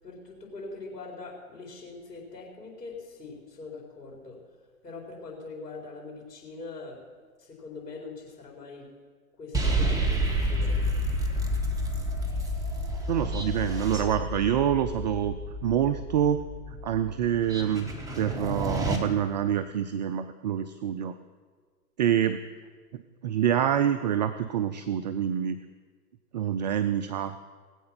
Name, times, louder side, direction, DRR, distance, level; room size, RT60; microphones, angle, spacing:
voice 1, 0.0-4.4 4.8-7.0 7.4-8.9 9.4-10.8, left 3 dB, 85° left, 0 dB, 4.7 m, -42 dB
sound 1, 9.5-19.0, equal, 5° right, 1.5 m, -30 dB
voice 2, 13.1-15.3 15.6-16.4 16.7-17.9 18.2-21.2 22.0-22.4 22.9-25.6 26.3-27.4, right 9 dB, 30° right, 10 dB, 0.4 m, -26 dB
19.5 x 8.7 x 5.9 m, 1.5 s
hypercardioid pair, 125°, 47 cm